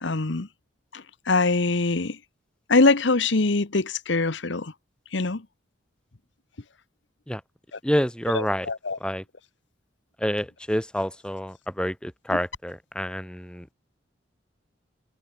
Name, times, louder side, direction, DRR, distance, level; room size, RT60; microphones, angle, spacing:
voice 1, 0.0-0.5 0.9-2.2 2.7-4.7 5.1-5.4 8.3-9.0 12.3-12.4, left 3 dB, 65° left, 1.1 m, -23 dB
voice 2, 7.8-8.7 9.0-9.2 10.2-13.7, equal, 5° left, 2.0 m, -28 dB
head